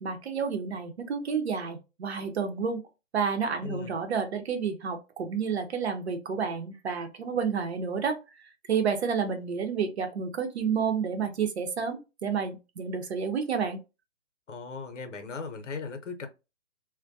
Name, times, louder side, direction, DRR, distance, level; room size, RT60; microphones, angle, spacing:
voice 1, 0.0-2.8 3.1-8.2 8.7-13.8, right 6 dB, 60° right, 0.7 m, -30 dB
voice 2, 3.6-3.9 14.5-16.3, left 4 dB, 75° left, 0.8 m, -37 dB
2.2 x 2.1 x 2.6 m
hypercardioid pair, 155°, 37 cm